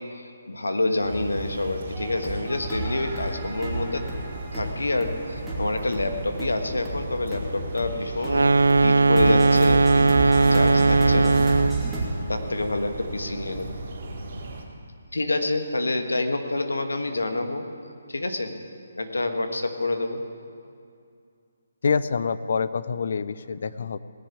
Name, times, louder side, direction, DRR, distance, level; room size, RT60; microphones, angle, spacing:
voice 1, 0.0-4.0 4.5-11.4 12.3-13.7 15.1-17.7 18.1-18.5 19.0-20.2, left 2 dB, 85° left, 6 dB, 1.4 m, -27 dB
sound 1, 1.0-14.6, right 2 dB, 50° right, 3.2 m, -37 dB
sound 2, 1.9-12.1, right 2 dB, ahead, 3.0 m, -31 dB
sound 3, 8.2-11.9, right 3 dB, 80° right, 0.4 m, -18 dB
voice 2, 21.8-24.0, left 5 dB, 60° left, 14 dB, 0.6 m, -26 dB
18.5 x 7.1 x 8.3 m, 2.4 s
figure-of-eight pair, 145°, 0 cm